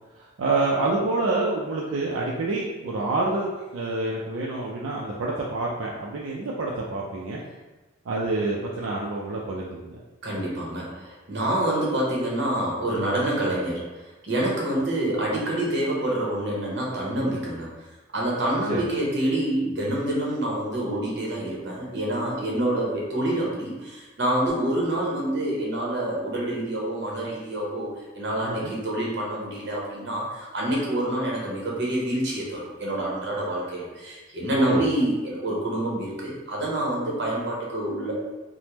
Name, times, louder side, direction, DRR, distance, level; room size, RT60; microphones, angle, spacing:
voice 1, 0.4-7.4 8.1-10.0 18.7-18.8 28.4-28.8 34.5-34.9, right 2 dB, 85° right, -4 dB, 0.4 m, -27 dB
voice 2, 10.2-13.9 14.2-17.7 18.1-27.9 28.1-38.1, right 1 dB, 60° right, -4 dB, 0.9 m, -27 dB
3.3 x 2.1 x 2.9 m, 1.2 s
head